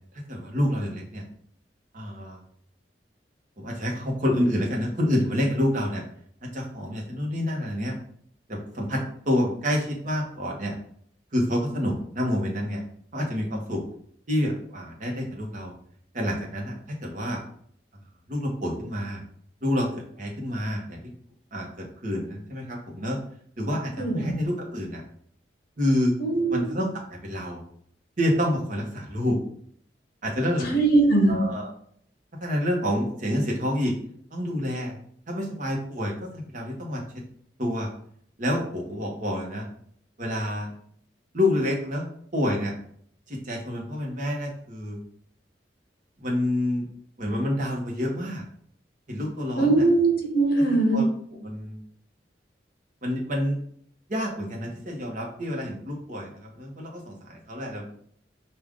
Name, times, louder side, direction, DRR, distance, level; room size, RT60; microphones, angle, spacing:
voice 1, 0.3-1.2 1.9-2.4 3.6-6.0 6.5-7.9 8.5-10.7 11.3-12.8 13.1-13.8 14.3-15.7 16.1-17.4 18.3-19.2 19.6-19.9 20.2-21.0 21.5-23.2 23.6-25.0 25.8-26.1 26.5-26.9 27.2-27.6 28.2-29.4 30.2-30.7 31.3-31.7 32.4-33.9 34.3-34.9 35.3-37.0 37.6-37.9 38.4-39.7 40.2-40.7 41.3-42.1 42.3-42.7 43.3-45.0 46.2-46.9 47.2-48.4 49.1-49.9 50.5-50.6 50.9-51.8 53.0-53.6 54.1-57.8, left 1 dB, 45° right, -1 dB, 1.1 m, -28 dB
voice 2, 24.0-24.3 26.2-26.7 30.7-31.4 49.6-51.0, right 2 dB, 55° left, 2 dB, 1.1 m, -21 dB
4.9 x 2.6 x 3.6 m, 0.62 s
head